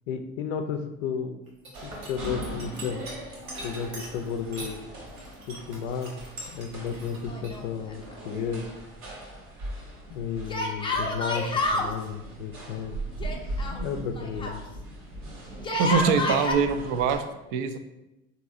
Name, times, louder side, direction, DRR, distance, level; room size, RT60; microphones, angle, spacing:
voice 1, 0.1-1.4 1.8-3.1 3.6-4.9 5.5-6.1 6.5-8.7 10.1-13.0 13.7-14.6, left 6 dB, 65° left, 7 dB, 0.5 m, -33 dB
sound 1, 1.5-4.8 5.1-7.6, right 1 dB, 90° right, 0.9 m, -42 dB
sound 2, 1.7-17.2, right 1 dB, 70° right, 1.2 m, -40 dB
Yell, 7.3-8.1 8.4-8.5 10.5-11.9 13.2-14.6 15.6-16.5, left 2 dB, 10° left, 0.5 m, -29 dB
voice 2, 15.8-17.2 17.5-17.8, right 6 dB, 55° right, 9 dB, 0.5 m, -23 dB
3.8 x 2.7 x 2.5 m, 0.96 s
figure-of-eight pair, 65°, 41 cm